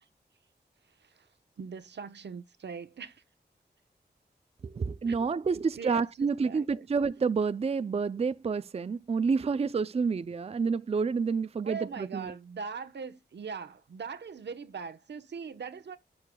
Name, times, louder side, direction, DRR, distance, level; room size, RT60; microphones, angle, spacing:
voice 1, 1.6-3.2 5.1-5.2 5.5-6.9 11.6-16.0, right 5 dB, 75° right, 1.0 m, -41 dB
voice 2, 4.6-12.3, right 5 dB, 35° right, 0.4 m, -29 dB
11.0 x 8.6 x 2.3 m
wide cardioid pair, 95°, 18 cm